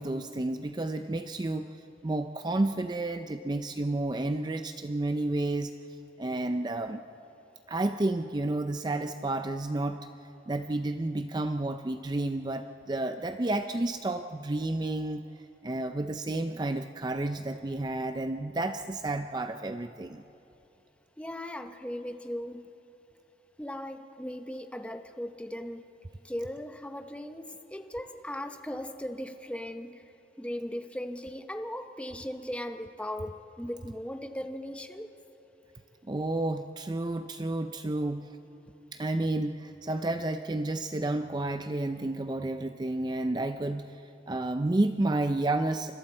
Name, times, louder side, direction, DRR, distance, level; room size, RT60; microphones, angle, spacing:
voice 1, 0.0-1.7 2.0-5.7 6.2-7.0 7.7-10.0 10.5-15.3 15.6-20.2 36.1-38.3 38.9-45.9, right 2 dB, 25° right, 8 dB, 0.4 m, -31 dB
voice 2, 21.2-22.6 23.6-25.8 26.2-30.0 30.4-35.1, left 1 dB, 5° left, 7 dB, 0.8 m, -38 dB
29.0 x 26.0 x 4.4 m, 3.0 s
head